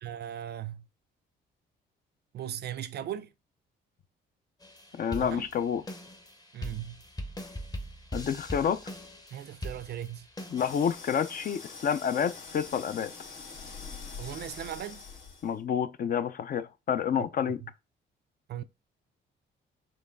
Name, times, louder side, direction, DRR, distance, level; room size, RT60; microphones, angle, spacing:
voice 1, 0.0-0.9 2.3-3.3 5.2-5.5 6.5-7.0 9.3-10.3 14.2-15.0 17.2-17.7 18.5-18.6, right 11 dB, 55° right, 0.5 m, -38 dB
sound 1, 4.6-10.9, equal, 20° left, 0.8 m, -41 dB
voice 2, 5.0-5.8 8.1-8.8 10.5-13.1 15.4-17.6, left 8 dB, 45° left, 0.5 m, -29 dB
sound 2, 10.6-15.6, left 4 dB, 75° left, 2.1 m, -44 dB
4.5 x 3.1 x 3.5 m
cardioid pair, 90°, 20 cm